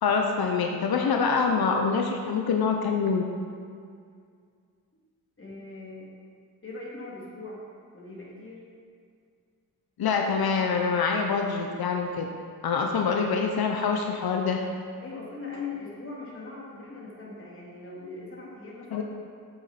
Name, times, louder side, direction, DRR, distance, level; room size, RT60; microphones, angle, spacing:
voice 1, 0.0-3.2 10.0-12.3 12.6-14.7 18.9-19.0, left 5 dB, 85° left, 2 dB, 0.6 m, -25 dB
voice 2, 5.4-6.1 6.6-7.6 7.9-8.6 15.0-19.0, left 3 dB, 35° left, -5 dB, 2.2 m, -40 dB
8.0 x 7.4 x 4.0 m, 2.2 s
wide cardioid pair, 80°, 36 cm